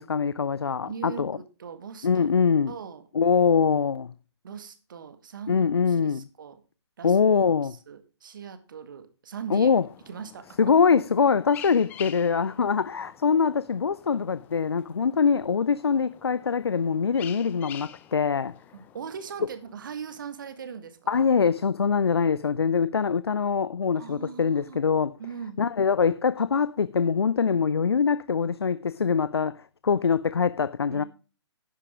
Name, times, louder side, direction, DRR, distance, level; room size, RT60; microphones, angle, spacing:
voice 1, 0.0-1.4 2.0-2.7 3.1-4.1 5.5-6.3 7.0-7.8 9.5-9.9 10.6-18.5 21.1-25.2 25.6-31.0, left 6 dB, 60° left, 0.5 m, -23 dB
voice 2, 0.8-2.3 2.7-3.0 4.4-6.6 7.0-7.2 7.6-9.8 10.1-10.7 18.7-21.3 23.9-24.8 25.2-25.6 30.9-31.1, right 7 dB, 45° right, 1.7 m, -40 dB
sound 1, 9.7-20.6, left 10 dB, 10° left, 0.7 m, -48 dB
11.0 x 10.0 x 3.5 m
figure-of-eight pair, 135°, 15 cm